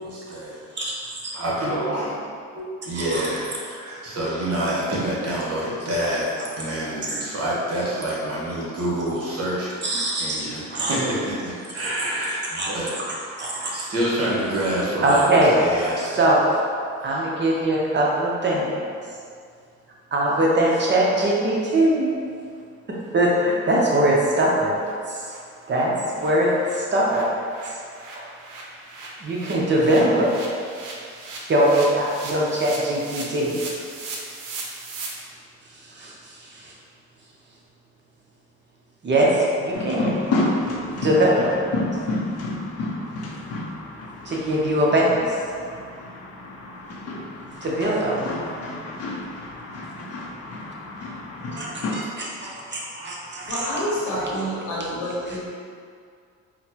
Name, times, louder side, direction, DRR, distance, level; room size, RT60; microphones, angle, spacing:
voice 1, 0.0-0.6 1.3-2.2 2.5-13.0 13.5-16.3 17.0-17.2, right 1 dB, 50° right, -6 dB, 1.1 m, -27 dB
voice 2, 9.8-10.4 10.7-10.9 12.5-12.7 13.4-13.7 15.0-15.5 16.1-16.4 17.0-18.8 20.1-22.1 22.9-24.8 25.1-25.3 25.7-27.3 28.2-28.3 29.2-30.3 31.5-33.6 35.9-36.7 39.0-40.3 40.9-41.7 44.2-45.2 47.6-48.3 51.5-53.7 54.2-54.3, right 1 dB, 35° right, -4 dB, 0.7 m, -21 dB
sound 1, 22.1-22.2 22.5-22.6 23.0-23.1 23.4-23.5 23.9-24.0 24.3-24.5 24.8-24.9 25.2-35.1, right 3 dB, 85° right, 0.6 m, -38 dB
sound 2, 39.7-51.9, left 2 dB, 55° left, 0.6 m, -30 dB
voice 3, 53.5-55.4, equal, 85° left, -7 dB, 1.1 m, -27 dB
4.0 x 2.1 x 2.8 m, 2.2 s
cardioid pair, 90°, 30 cm